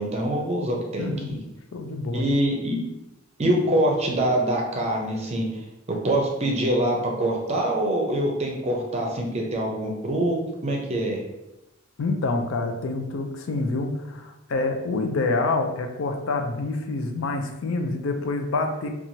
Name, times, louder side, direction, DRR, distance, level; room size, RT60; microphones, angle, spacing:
voice 1, 0.0-1.4 2.1-2.8 3.4-5.5 5.9-11.2, right 1 dB, 30° right, 0 dB, 0.5 m, -24 dB
voice 2, 1.0-1.3 1.7-2.3 12.0-18.9, left 3 dB, 70° left, 4 dB, 0.4 m, -27 dB
3.0 x 2.3 x 2.7 m, 0.93 s
head